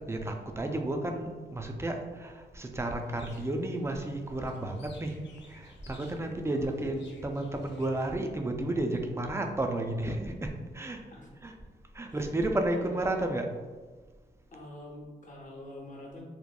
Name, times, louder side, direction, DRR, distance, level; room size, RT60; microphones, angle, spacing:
voice 1, 0.0-5.2 5.5-11.0 11.4-11.5 11.9-13.5, right 1 dB, 15° right, 4 dB, 0.4 m, -32 dB
sound 1, 2.9-8.2, left 4 dB, 70° left, 0.4 m, -54 dB
voice 2, 11.1-11.5 12.1-12.5 12.8-12.9 14.5-16.3, left 1 dB, 45° left, -2 dB, 0.7 m, -46 dB
2.8 x 2.1 x 2.2 m, 1.3 s
supercardioid pair, 45°, 19 cm